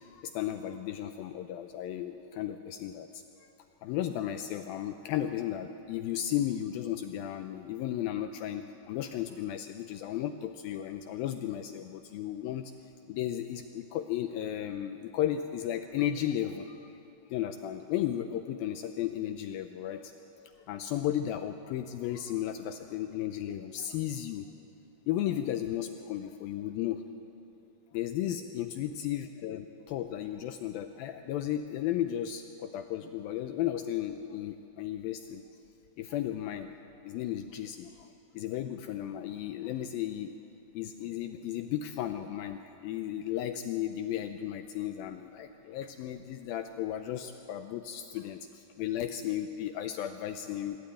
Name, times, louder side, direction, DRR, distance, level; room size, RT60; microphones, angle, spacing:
voice 1, 0.0-3.2 3.8-12.7 13.1-16.9 17.3-24.5 25.1-27.0 27.9-35.4 36.0-36.8 37.0-40.3 40.7-50.8, left 11 dB, 85° left, 8 dB, 2.1 m, -34 dB
24.0 x 12.0 x 9.1 m, 2.8 s
omnidirectional pair, 4.8 m